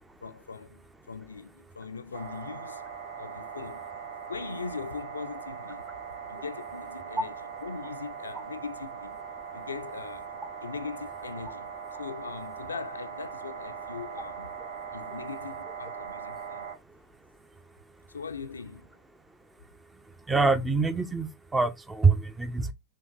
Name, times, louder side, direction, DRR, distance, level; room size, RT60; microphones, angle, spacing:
voice 1, 0.2-2.9 3.2-5.9 6.3-9.2 9.5-11.7 12.0-14.6 14.9-16.7 18.1-19.0, left 5 dB, 75° left, 0.5 m, -40 dB
sound 1, 2.1-16.8, right 6 dB, 70° right, 2.3 m, -40 dB
voice 2, 20.3-22.7, right 4 dB, 10° right, 0.6 m, -25 dB
6.5 x 2.9 x 2.8 m
figure-of-eight pair, 90°, 0 cm